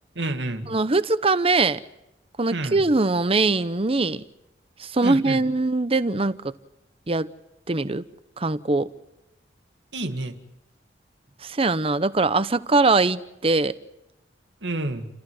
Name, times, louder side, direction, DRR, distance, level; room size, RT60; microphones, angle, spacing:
voice 1, 0.2-0.7 2.5-2.8 5.0-5.4 9.9-10.4 14.6-15.1, right 2 dB, 80° right, 2.1 m, -29 dB
voice 2, 0.7-1.8 2.4-4.2 4.8-6.5 7.1-7.3 7.7-8.0 8.4-8.9 11.4-13.7, right 3 dB, 35° right, 0.8 m, -22 dB
30.0 x 14.5 x 9.4 m
head